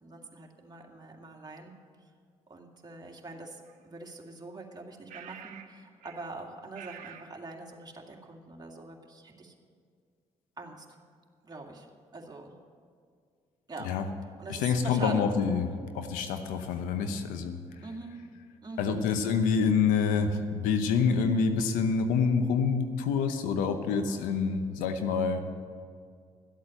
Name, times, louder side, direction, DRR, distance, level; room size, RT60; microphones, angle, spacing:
voice 1, 0.0-1.7 2.5-9.5 10.6-10.9 11.4-11.9 12.1-12.5 13.7-13.9 14.4-15.3 17.8-18.2 18.6-19.0 24.1-24.6, right 3 dB, 30° right, 0 dB, 2.2 m, -43 dB
sound 1, 3.7-3.8 5.1-5.7 6.0-6.3 6.7-7.3, right 9 dB, 80° right, 1.0 m, -47 dB
voice 2, 14.5-15.7 15.9-17.6 18.8-25.4, left 5 dB, 85° left, 8 dB, 0.9 m, -27 dB
12.5 x 8.4 x 7.8 m, 2.1 s
supercardioid pair, 55°, 13 cm